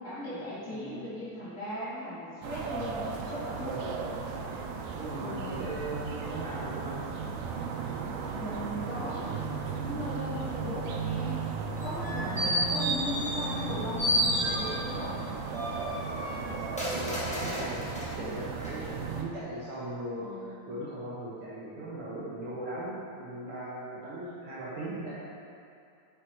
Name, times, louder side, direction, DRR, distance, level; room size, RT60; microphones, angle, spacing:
voice 1, 0.0-3.7 5.2-5.6 8.3-11.4 11.8-15.2 18.1-18.4 20.2-20.6, left 1 dB, 40° left, -11 dB, 2.7 m, -38 dB
sound 1, 2.4-19.2, right 5 dB, 85° right, 2.2 m, -35 dB
voice 2, 3.6-4.4 5.0-7.1 16.3-20.3 20.7-25.2, right 1 dB, 60° right, -8 dB, 1.6 m, -39 dB
sound 2, 11.8-13.7 14.0-15.0 15.5-18.1 18.6-18.7, equal, 5° left, 0.6 m, -31 dB
8.3 x 6.1 x 4.6 m, 2.5 s
omnidirectional pair, 3.5 m